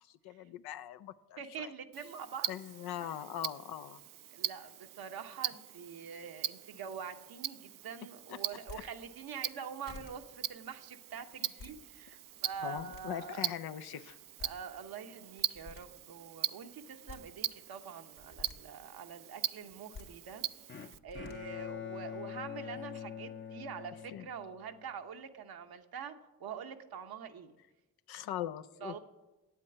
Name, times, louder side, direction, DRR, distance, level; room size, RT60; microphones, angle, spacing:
voice 1, 0.1-1.7 2.5-4.0 8.3-8.5 8.7-8.8 12.6-14.2 24.1-24.3 28.1-29.0, left 11 dB, 90° left, 11 dB, 0.5 m, -41 dB
voice 2, 1.4-2.6 3.0-3.2 4.3-13.5 14.4-27.6 28.8-29.0, right 7 dB, 80° right, 6 dB, 0.9 m, -45 dB
Tick-tock, 1.9-21.0, right 12 dB, 65° right, 0.5 m, -42 dB
sound 1, 8.5-8.8 9.5-9.6 9.9-10.1 11.3-11.7 12.5-13.0 14.1-14.2 14.4-14.5 15.4-15.8 16.8-17.2 18.1-18.6 19.7-20.1 20.9-21.4, left 4 dB, 70° left, 2.2 m, -49 dB
Bowed string instrument, 20.7-24.9, left 8 dB, 35° left, 0.6 m, -44 dB
8.5 x 8.3 x 7.7 m, 1.1 s
supercardioid pair, 40°, 36 cm